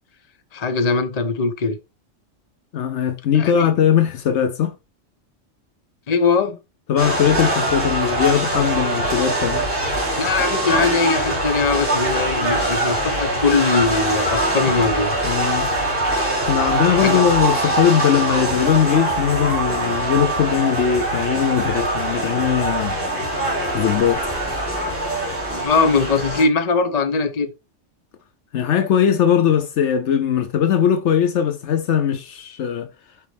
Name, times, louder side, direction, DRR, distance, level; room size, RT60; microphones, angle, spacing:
voice 1, 0.5-1.8 3.3-3.7 6.1-6.6 10.2-15.2 17.0-17.2 25.5-27.5, left 4 dB, 35° left, 0.9 m, -21 dB
voice 2, 2.7-4.8 6.9-9.6 15.2-15.7 16.4-23.0 23.7-24.3 28.5-32.9, left 8 dB, 70° left, 0.9 m, -19 dB
sound 1, 7.0-26.4, right 1 dB, 10° right, 3.3 m, -23 dB
6.8 x 4.8 x 3.4 m
omnidirectional pair, 1.3 m